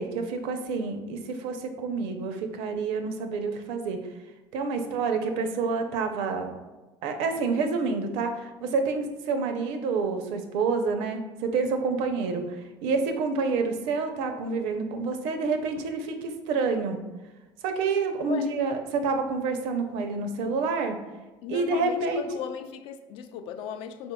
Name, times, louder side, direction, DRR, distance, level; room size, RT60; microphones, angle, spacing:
voice 1, 0.0-4.0 4.5-6.5 7.0-17.0 17.6-21.0 21.5-22.3, right 4 dB, 80° right, 6 dB, 0.5 m, -28 dB
voice 2, 21.4-24.1, left 8 dB, 65° left, 7 dB, 0.4 m, -37 dB
4.4 x 3.5 x 2.2 m, 1.1 s
supercardioid pair, 115°, 10 cm